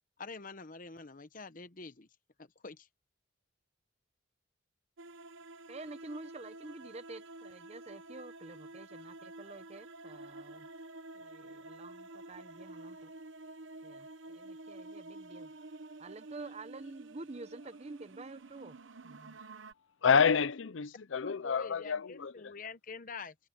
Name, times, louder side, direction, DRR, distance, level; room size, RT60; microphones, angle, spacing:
voice 1, 0.2-2.1 2.4-2.9 21.2-23.3, left 4 dB, 45° left, 1.0 m, -46 dB
sound 1, 5.0-19.7, right 2 dB, 75° right, 0.9 m, -50 dB
voice 2, 5.7-10.7 11.1-13.1 13.8-15.5 16.0-18.8 19.0-19.4, right 2 dB, 35° right, 0.9 m, -48 dB
voice 3, 20.0-22.3, left 6 dB, 75° left, 0.6 m, -28 dB
head